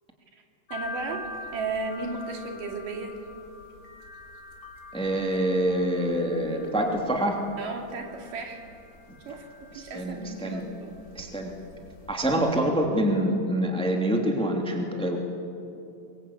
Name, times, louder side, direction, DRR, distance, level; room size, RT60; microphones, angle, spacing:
sound 1, 0.7-12.6, left 2 dB, 40° left, 2.6 m, -45 dB
voice 1, 0.7-3.2 7.6-8.6 9.2-11.0, right 3 dB, 75° right, 3 dB, 4.0 m, -35 dB
voice 2, 4.9-7.4 9.7-10.6 11.1-11.5 12.1-15.2, right 1 dB, ahead, 1 dB, 2.3 m, -26 dB
24.0 x 23.0 x 8.8 m, 2.6 s
omnidirectional pair, 3.9 m